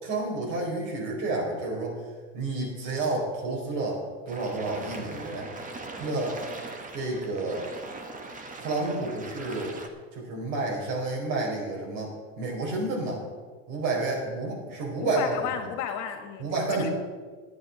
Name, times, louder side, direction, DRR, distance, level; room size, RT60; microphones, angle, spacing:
voice 1, 0.0-2.0 2.3-5.5 6.0-6.4 6.9-7.7 8.6-9.7 10.1-13.2 13.7-15.4 16.4-16.9, right 2 dB, 60° right, 0 dB, 4.3 m, -30 dB
sound 1, 4.3-9.9, right 2 dB, 25° right, 1.5 m, -41 dB
voice 2, 15.0-16.9, left 8 dB, 55° left, 6 dB, 1.9 m, -33 dB
9.7 x 9.4 x 6.4 m, 1.5 s
supercardioid pair, 105°, 34 cm